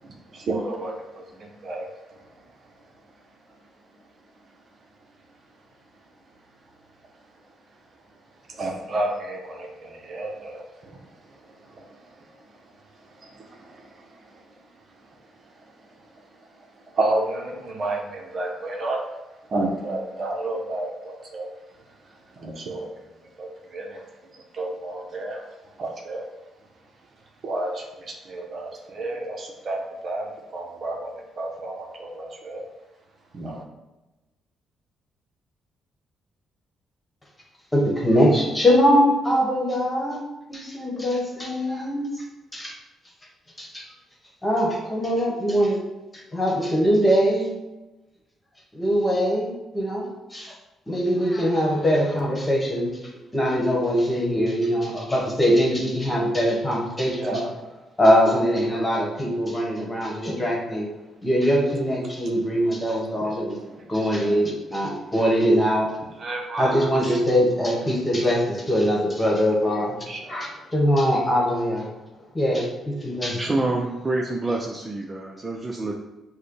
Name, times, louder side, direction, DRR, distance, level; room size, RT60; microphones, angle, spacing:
voice 1, 0.0-2.5 3.5-3.6 4.4-4.6 8.5-19.0 19.4-26.3 27.4-32.6 33.3-33.6 57.2-57.8 63.2-63.4 63.8-64.4 64.7-64.9 66.1-67.2 70.1-70.4, right 2 dB, 50° right, 1 dB, 0.8 m, -32 dB
voice 2, 37.7-40.2 40.5-42.2 42.5-42.7 43.6-43.8 44.4-45.8 46.1-47.5 48.7-50.0 50.3-50.5 50.9-53.0 53.3-57.4 58.0-60.9 61.2-63.6 63.9-65.9 66.6-71.9 72.3-72.7 73.0-73.4 74.5-74.6, equal, 20° left, -2 dB, 1.3 m, -22 dB
voice 3, 73.3-75.9, right 2 dB, 25° right, -1 dB, 0.5 m, -27 dB
6.5 x 2.2 x 3.2 m, 1.1 s
cardioid pair, 90°, 0 cm